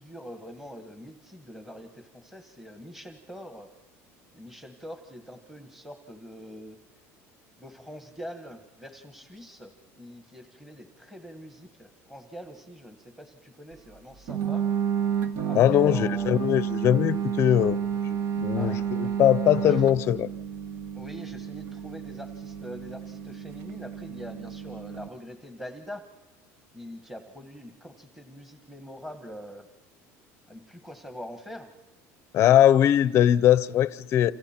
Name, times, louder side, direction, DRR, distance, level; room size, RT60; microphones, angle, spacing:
voice 1, 0.0-3.7 4.3-6.8 7.6-14.6 15.5-16.5 18.6-18.8 19.7-19.8 20.9-26.0 26.7-29.7 30.5-31.7, equal, 5° right, 1.3 m, -44 dB
sound 1, 14.3-25.1, right 8 dB, 60° right, 1.4 m, -31 dB
voice 2, 15.5-17.8 18.4-20.3 32.3-34.3, left 11 dB, 45° left, 0.6 m, -21 dB
28.5 x 27.5 x 4.4 m
cardioid pair, 150°, 6 cm